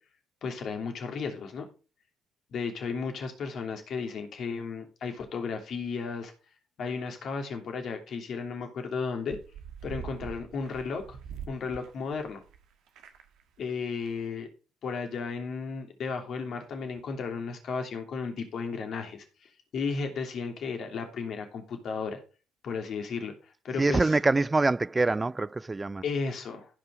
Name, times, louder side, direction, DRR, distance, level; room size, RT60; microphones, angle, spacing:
voice 1, 0.4-1.7 2.5-6.3 6.8-9.4 9.8-11.2 11.5-12.4 13.6-14.5 14.8-19.2 19.7-22.2 22.6-23.3 23.6-24.2 26.0-26.7, left 5 dB, 60° left, 2.9 m, -34 dB
sound 1, 9.3-12.6 12.9-13.4 13.7-13.8 14.0-14.1, right 7 dB, 70° right, 1.5 m, -43 dB
voice 2, 23.8-26.0, right 3 dB, 25° right, 0.4 m, -25 dB
15.0 x 5.5 x 5.0 m
hypercardioid pair, 50°, 0 cm